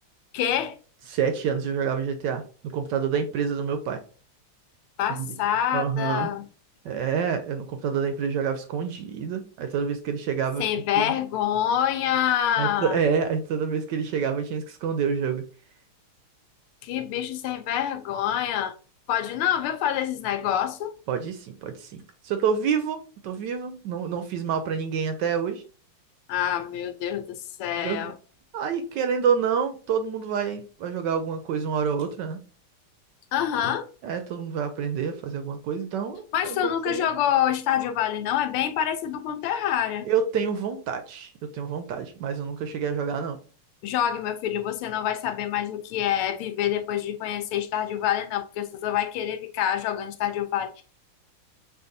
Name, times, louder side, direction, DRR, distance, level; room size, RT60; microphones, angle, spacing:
voice 1, 0.3-0.7 5.0-6.4 10.6-13.0 16.8-18.7 19.1-20.9 26.3-28.1 33.3-33.9 36.3-40.1 43.8-50.8, left 10 dB, 85° left, 1.5 m, -26 dB
voice 2, 1.1-4.0 5.1-5.3 5.7-6.3 6.8-10.6 11.0-11.1 12.6-15.4 21.1-25.6 27.8-28.1 28.5-32.4 34.0-37.1 40.0-43.4, right 6 dB, 75° right, 1.0 m, -28 dB
6.7 x 2.5 x 2.6 m
omnidirectional pair, 2.3 m